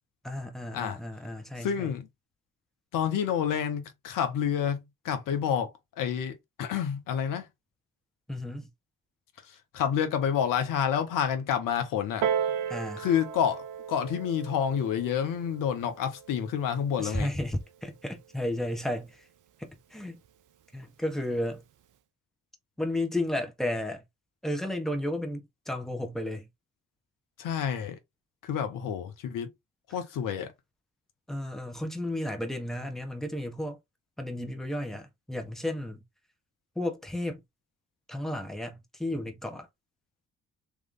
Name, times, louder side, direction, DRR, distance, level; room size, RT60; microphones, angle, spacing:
voice 1, 0.2-1.9 8.3-8.7 12.7-13.1 17.0-19.3 19.6-20.2 20.7-21.6 22.8-24.0 24.4-26.5 31.3-33.8 34.2-36.0 36.7-37.4 38.1-39.7, left 1 dB, ahead, 1.4 m, -33 dB
voice 2, 1.6-2.1 2.9-7.5 9.5-12.3 13.0-17.3 27.4-28.0 28.4-29.5 29.9-30.5, left 8 dB, 75° left, 1.0 m, -29 dB
Piano, 12.2-17.4 18.2-18.3, right 8 dB, 65° right, 0.7 m, -35 dB
3.5 x 3.2 x 3.8 m
hypercardioid pair, 40°, 33 cm